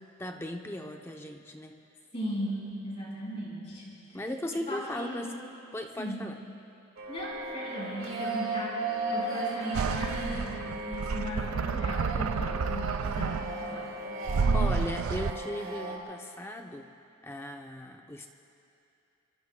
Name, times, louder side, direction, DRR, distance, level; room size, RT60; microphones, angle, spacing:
voice 1, 0.0-1.8 4.1-5.3 5.7-6.4 14.5-16.9 17.2-18.3, left 1 dB, 10° left, 3 dB, 0.6 m, -37 dB
voice 2, 2.1-4.2 4.7-5.3 6.0-6.2 7.1-14.0, equal, 30° left, -5 dB, 4.6 m, -37 dB
sound 1, 7.0-16.0, right 2 dB, 70° right, 2.1 m, -36 dB
sound 2, 9.7-13.7 14.3-15.3, right 5 dB, 85° right, 0.4 m, -30 dB
25.0 x 23.5 x 2.2 m, 2.7 s
head